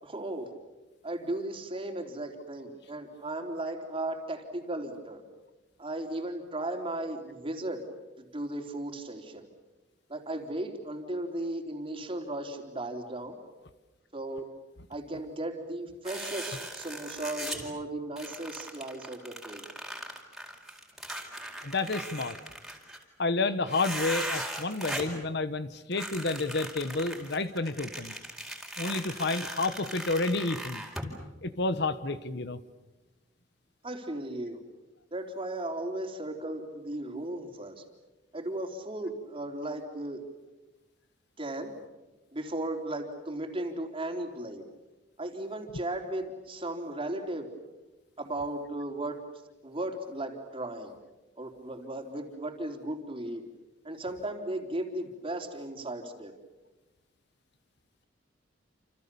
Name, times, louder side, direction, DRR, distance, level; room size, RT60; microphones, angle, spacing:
voice 1, 0.0-0.5 1.0-5.2 5.8-7.8 8.2-9.5 10.1-13.4 14.1-14.5 14.9-19.6 33.8-34.6 35.1-37.8 38.3-40.2 41.4-41.7 42.3-44.6 45.2-47.5 48.2-49.2 49.6-50.9 51.4-53.4 53.8-56.3, right 1 dB, 30° right, 3 dB, 3.7 m, -36 dB
sound 1, 16.0-17.7 18.2-23.0 23.7-25.2 25.9-31.1, right 1 dB, ahead, 4.6 m, -39 dB
voice 2, 21.6-22.4 23.2-28.1 28.8-30.8 31.4-32.6, left 3 dB, 60° left, 12 dB, 1.2 m, -30 dB
29.5 x 28.0 x 7.0 m, 1.1 s
head